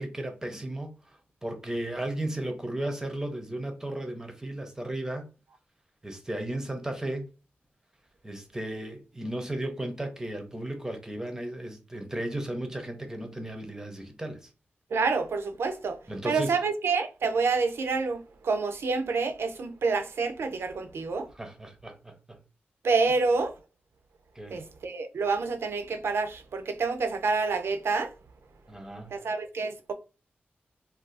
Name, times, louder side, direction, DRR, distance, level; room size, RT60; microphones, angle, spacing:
voice 1, 0.0-5.3 6.0-7.3 8.2-14.5 16.1-16.5 21.4-22.4 24.4-24.6 28.7-29.1, right 1 dB, 15° right, 0.5 m, -35 dB
voice 2, 14.9-16.0 16.2-21.3 22.8-23.6 24.5-28.1 29.1-29.9, right 4 dB, 85° right, 0.5 m, -28 dB
2.5 x 2.3 x 3.8 m
wide cardioid pair, 140°, 4 cm